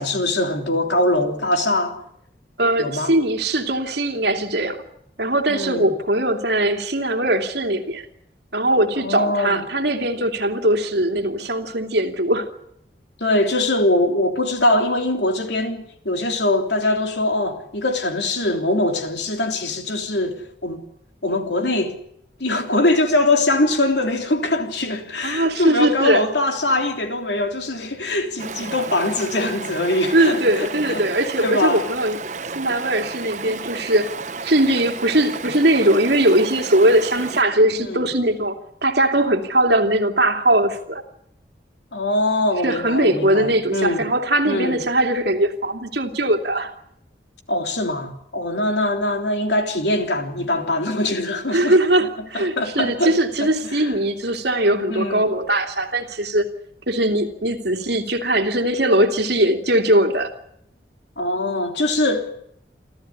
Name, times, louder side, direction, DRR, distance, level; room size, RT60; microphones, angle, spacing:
voice 1, 0.0-2.0 2.8-3.1 5.5-5.9 8.9-9.6 13.2-20.8 21.2-22.0 22.4-31.1 31.4-31.8 37.8-38.1 41.9-44.1 44.4-44.8 47.5-52.1 52.3-53.9 54.9-55.3 61.2-62.3, left 1 dB, 80° left, 3.4 m, -22 dB
voice 2, 2.6-4.8 5.2-8.1 8.5-12.5 25.2-26.3 30.1-32.2 32.5-34.1 34.4-38.6 38.8-41.0 42.6-46.7 51.5-56.5 56.9-60.3, right 1 dB, 70° right, 2.8 m, -20 dB
Stream, 28.4-37.4, right 4 dB, 40° right, 0.9 m, -33 dB
28.5 x 13.5 x 9.8 m
head